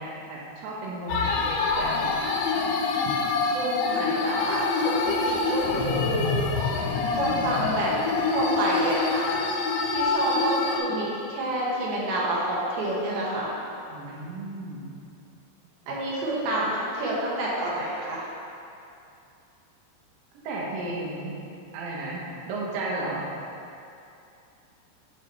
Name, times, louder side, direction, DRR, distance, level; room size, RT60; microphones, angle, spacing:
voice 1, 0.0-2.1 13.9-14.9 20.4-21.4 21.7-23.3, right 2 dB, 90° right, -4 dB, 2.0 m, -34 dB
sound 1, 1.1-10.8, left 4 dB, 85° left, 2.7 m, -26 dB
voice 2, 3.5-6.4 7.2-7.9 8.3-9.3 9.9-13.5 15.9-18.2, right 1 dB, 70° right, -5 dB, 2.4 m, -28 dB
7.5 x 5.2 x 3.3 m, 2.6 s
omnidirectional pair, 5.5 m